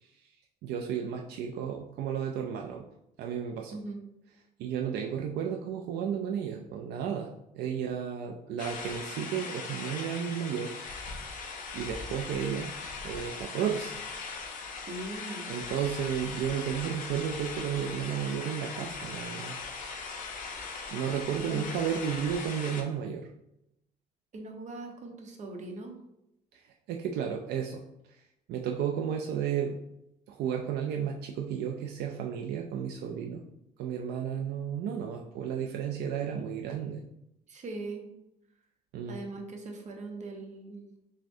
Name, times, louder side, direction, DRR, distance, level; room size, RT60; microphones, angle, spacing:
voice 1, 0.6-2.8 3.2-3.8 4.6-10.7 11.4-12.7 13.0-14.0 15.5-19.6 20.3-20.4 20.9-23.3 26.5-26.6 26.9-27.8 28.1-28.2 28.5-29.8 30.3-33.4 33.8-37.0 38.9-39.2, right 8 dB, 75° right, 2 dB, 0.4 m, -33 dB
sound 1, 8.6-22.8, left 4 dB, 50° left, 0.7 m, -40 dB
voice 2, 14.9-15.5 21.4-21.6 24.3-26.0 37.5-38.1 39.1-40.9, right 2 dB, 45° right, 3 dB, 0.8 m, -40 dB
6.1 x 2.1 x 2.6 m, 0.84 s
cardioid pair, 110°, 17 cm